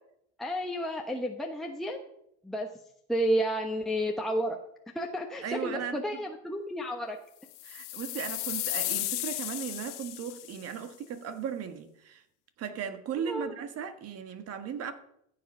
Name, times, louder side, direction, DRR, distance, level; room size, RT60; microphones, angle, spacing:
voice 1, 0.4-2.0 2.4-2.7 3.1-4.6 4.9-7.2 13.3-13.5, equal, ahead, 1.0 m, -31 dB
voice 2, 5.4-6.0 7.6-12.2 12.6-14.9, right 8 dB, 45° right, 1.6 m, -37 dB
sound 1, 7.5-10.7, left 17 dB, 85° left, 1.3 m, -34 dB
15.0 x 7.3 x 5.5 m
supercardioid pair, 115°, 34 cm